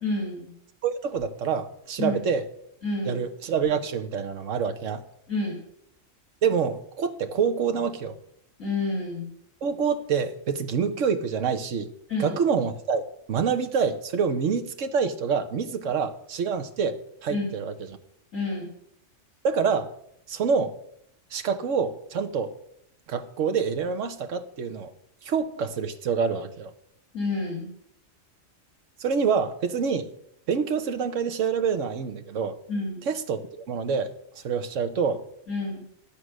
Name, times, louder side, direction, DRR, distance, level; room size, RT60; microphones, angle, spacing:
voice 1, 0.0-0.5 2.0-2.2 2.8-3.2 5.3-5.6 8.6-9.3 12.1-12.4 17.3-17.5 18.3-18.7 27.1-27.7 32.7-33.0 35.5-35.8, left 2 dB, 70° left, 3.0 m, -29 dB
voice 2, 0.8-2.5 3.0-5.0 6.4-8.2 9.6-11.9 12.2-18.0 19.4-19.9 20.3-20.7 21.3-22.5 23.1-24.9 25.2-26.7 29.0-30.1 30.5-32.6 33.0-34.1 34.4-35.2, right 6 dB, 65° right, 1.4 m, -26 dB
13.5 x 8.6 x 6.3 m
omnidirectional pair, 1.4 m